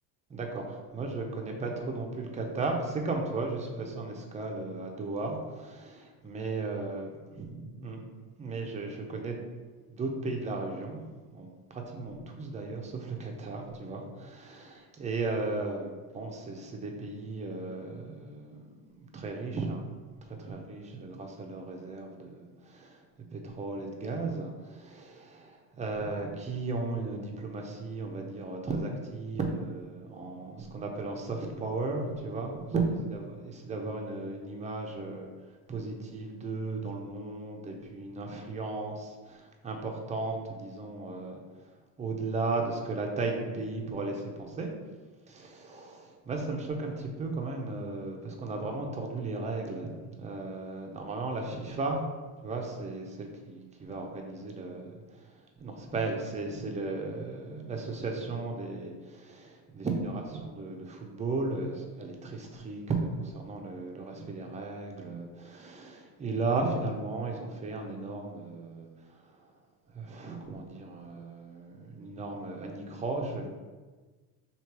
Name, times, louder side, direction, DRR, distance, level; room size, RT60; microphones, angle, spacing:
voice 1, 0.3-8.0 8.4-9.4 9.9-23.0 23.3-35.3 35.7-41.4 42.0-44.7 45.3-52.1 52.4-69.3 69.9-73.5, right 3 dB, 15° right, 1 dB, 0.5 m, -35 dB
3.1 x 2.9 x 4.6 m, 1.3 s
cardioid pair, 130°, 42 cm